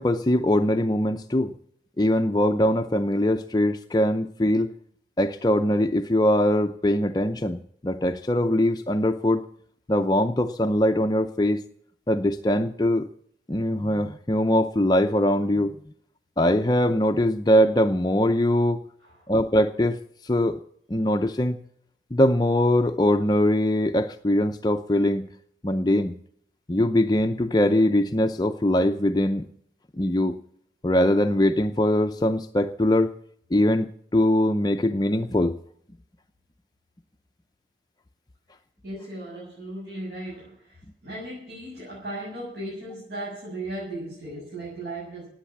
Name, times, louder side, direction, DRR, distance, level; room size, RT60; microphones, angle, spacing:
voice 1, 0.0-1.5 2.0-4.7 5.2-9.4 9.9-11.6 12.1-13.1 13.5-15.8 16.4-18.8 19.3-20.0 20.2-20.6 20.9-21.6 22.1-25.3 25.6-26.2 26.7-29.5 30.0-30.3 30.8-33.1 33.5-33.9 34.1-35.5, left 1 dB, 25° left, 6 dB, 0.6 m, -22 dB
voice 2, 38.8-45.3, right 1 dB, 60° right, -6 dB, 7.7 m, -36 dB
18.5 x 8.7 x 7.2 m, 0.66 s
head